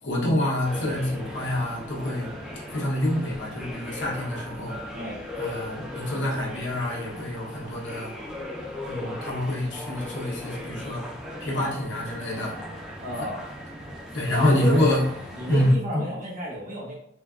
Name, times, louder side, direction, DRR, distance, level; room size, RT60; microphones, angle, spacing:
voice 1, 0.0-2.4 2.7-4.8 5.4-8.1 8.9-11.1 11.4-12.6 13.2-13.3 14.1-15.0 15.5-16.1, left 1 dB, 75° left, -3 dB, 1.0 m, -26 dB
sound 1, 0.6-15.7, left 1 dB, 5° right, 0.5 m, -38 dB
voice 2, 13.0-13.4 14.3-14.9 15.3-17.0, right 1 dB, 45° right, -3 dB, 0.9 m, -32 dB
3.8 x 2.2 x 2.4 m, 0.75 s
head